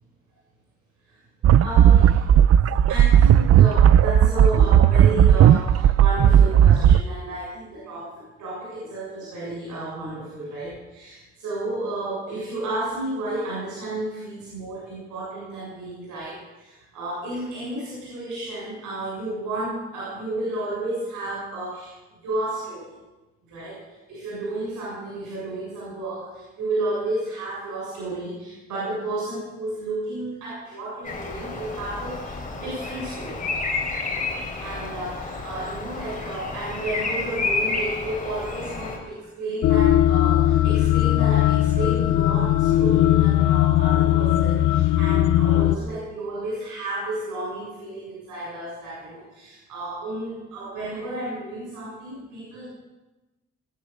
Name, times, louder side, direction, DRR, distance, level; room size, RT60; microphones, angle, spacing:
sound 1, 1.4-7.0, right 9 dB, 50° right, 0.6 m, -15 dB
voice 1, 1.6-2.3 2.9-22.9 23.5-33.4 34.6-52.7, right 2 dB, 85° right, -7 dB, 7.2 m, -32 dB
Bird vocalization bird call bird song, 31.0-39.0, left 3 dB, 25° left, 4.1 m, -30 dB
sound 2, 39.6-45.8, left 13 dB, 85° left, 0.8 m, -19 dB
20.0 x 9.4 x 6.8 m, 1.1 s
cardioid pair, 90°, 30 cm